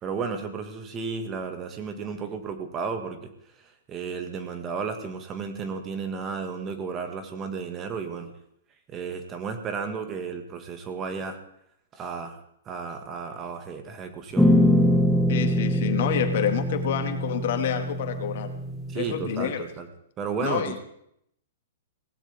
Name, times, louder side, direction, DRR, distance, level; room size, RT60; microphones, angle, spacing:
voice 1, 0.0-3.3 3.6-8.3 8.9-11.4 11.9-12.4 12.7-14.5 18.9-19.9 20.2-20.8, right 5 dB, 25° right, 6 dB, 2.0 m, -33 dB
sound 1, 14.4-19.4, equal, 5° left, 1.3 m, -23 dB
voice 2, 15.3-18.5 18.9-19.7 20.4-20.8, left 9 dB, 60° left, 6 dB, 2.2 m, -28 dB
18.0 x 16.0 x 3.7 m, 0.72 s
hypercardioid pair, 125°, 0 cm